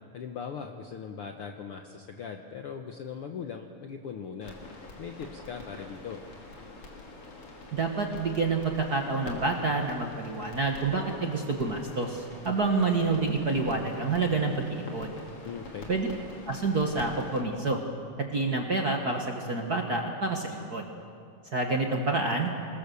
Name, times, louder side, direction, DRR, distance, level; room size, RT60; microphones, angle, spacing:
voice 1, 0.1-4.6 5.0-6.2 15.4-15.9, left 6 dB, 65° left, 4 dB, 1.4 m, -39 dB
sound 1, 4.4-17.4, left 2 dB, 45° left, 3.4 m, -45 dB
voice 2, 7.7-15.1 15.9-16.1 16.5-17.8 18.2-20.9 21.5-22.5, right 3 dB, 40° right, 1 dB, 1.4 m, -28 dB
26.5 x 20.0 x 7.0 m, 2.3 s
omnidirectional pair, 3.7 m